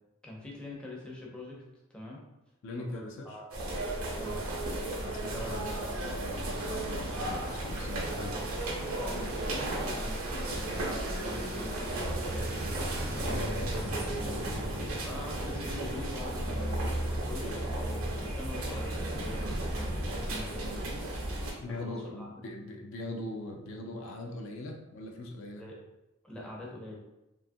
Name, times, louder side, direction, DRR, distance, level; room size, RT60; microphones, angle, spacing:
voice 1, 0.2-1.6 1.9-2.2 2.9-3.5 4.2-4.4 5.3-5.8 8.9-12.6 13.4-13.7 15.0-21.0 21.7-22.4 25.6-25.8 26.2-27.0, left 1 dB, 5° left, -4 dB, 0.5 m, -43 dB
voice 2, 2.6-3.4 5.0-8.6 13.2-14.5 21.6-25.7, left 2 dB, 65° left, 2 dB, 0.4 m, -41 dB
sound 1, 3.5-21.5, right 1 dB, 80° right, 0.7 m, -35 dB
sound 2, 6.3-13.8, right 2 dB, 45° right, 0.4 m, -47 dB
sound 3, 11.9-20.1, right 1 dB, 80° left, 0.8 m, -37 dB
2.7 x 2.3 x 2.6 m, 0.96 s
head